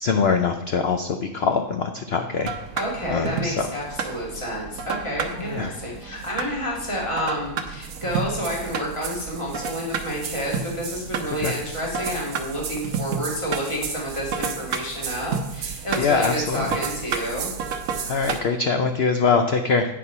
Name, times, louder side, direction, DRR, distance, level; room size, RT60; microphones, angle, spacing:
voice 1, 0.0-2.5 3.1-3.7 5.4-5.7 11.4-11.5 16.0-16.8 18.1-19.8, left 5 dB, 75° left, 6 dB, 0.5 m, -23 dB
sound 1, 2.4-18.4, right 6 dB, 65° right, 1.1 m, -31 dB
voice 2, 2.8-17.5, equal, 20° left, -3 dB, 2.0 m, -29 dB
9.2 x 4.4 x 5.4 m, 0.88 s
omnidirectional pair, 1.7 m